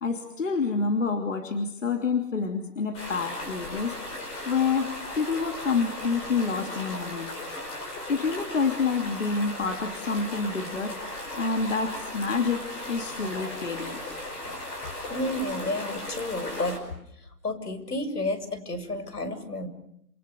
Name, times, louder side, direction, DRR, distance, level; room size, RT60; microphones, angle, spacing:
voice 1, 0.0-4.0 4.5-7.3 8.1-11.0 11.3-14.0, left 4 dB, 50° left, 5 dB, 3.1 m, -28 dB
sound 1, 2.9-16.8, left 1 dB, 10° left, 5.4 m, -37 dB
voice 2, 15.1-16.8 17.4-19.7, left 1 dB, 75° left, 10 dB, 7.2 m, -31 dB
29.0 x 28.5 x 6.9 m, 0.72 s
figure-of-eight pair, 155°, 48 cm